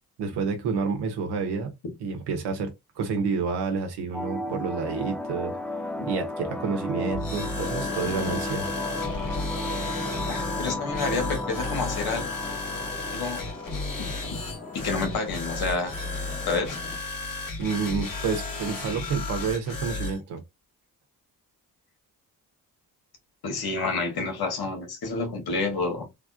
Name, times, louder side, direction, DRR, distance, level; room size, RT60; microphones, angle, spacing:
voice 1, 0.2-1.7 2.0-5.5 6.0-8.7 17.6-20.4, right 5 dB, 85° right, 0.9 m, -29 dB
sound 1, 4.1-15.1, left 1 dB, 5° left, 0.4 m, -34 dB
sound 2, 7.1-20.2, left 3 dB, 55° left, 1.7 m, -34 dB
sound 3, 7.6-17.0, left 4 dB, 20° left, 1.4 m, -39 dB
voice 2, 10.3-12.2 13.1-13.4 14.0-14.1 14.8-15.9 16.5-16.8 23.4-26.1, left 3 dB, 70° left, 1.5 m, -29 dB
3.4 x 2.4 x 2.3 m
supercardioid pair, 60°, 39 cm